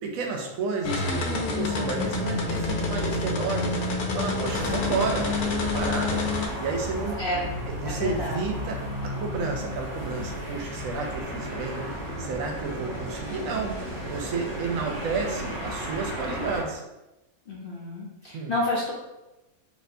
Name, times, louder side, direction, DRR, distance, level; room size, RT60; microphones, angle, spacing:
voice 1, 0.0-3.8 4.1-6.2 6.6-7.2 7.8-16.8 18.3-18.5, right 4 dB, 70° right, 2 dB, 1.0 m, -31 dB
sound 1, 0.8-6.5, left 3 dB, 90° left, 1.1 m, -27 dB
voice 2, 4.5-5.0 7.2-7.4 7.8-8.4 17.5-18.9, left 1 dB, 55° left, -5 dB, 0.6 m, -30 dB
sound 2, 4.5-16.6, equal, 15° left, 1.3 m, -34 dB
4.3 x 2.8 x 2.6 m, 0.98 s
omnidirectional pair, 1.5 m